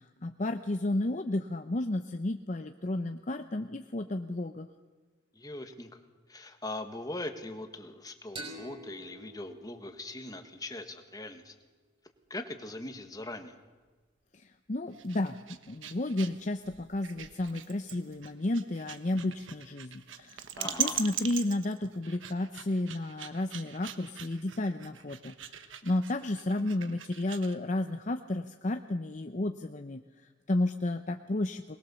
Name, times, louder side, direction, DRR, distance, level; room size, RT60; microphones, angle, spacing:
voice 1, 0.0-4.7 14.3-15.4 15.7-20.5 20.8-31.8, left 1 dB, 40° left, 7 dB, 0.7 m, -32 dB
voice 2, 5.3-5.9 6.3-11.5 12.3-13.6 20.6-21.0, left 2 dB, 20° left, 6 dB, 1.6 m, -41 dB
sound 1, 8.4-11.7, right 1 dB, 25° right, 5.1 m, -48 dB
sound 2, 14.9-27.6, right 9 dB, 90° right, 1.2 m, -41 dB
23.0 x 20.5 x 7.0 m, 1.3 s
head